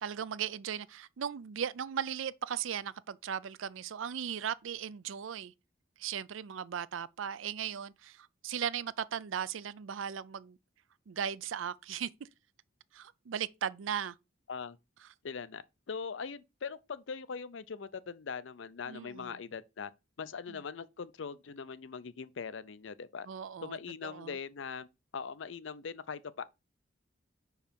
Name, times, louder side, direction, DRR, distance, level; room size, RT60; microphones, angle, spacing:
voice 1, 0.0-5.5 6.0-10.6 11.1-12.3 12.9-14.2 18.9-19.4 20.5-20.6 23.3-24.4, right 8 dB, 80° right, 0.4 m, -37 dB
voice 2, 15.2-19.9 20.2-23.3 23.6-24.9 25.1-26.4, left 5 dB, 70° left, 0.5 m, -41 dB
5.6 x 4.7 x 5.1 m
head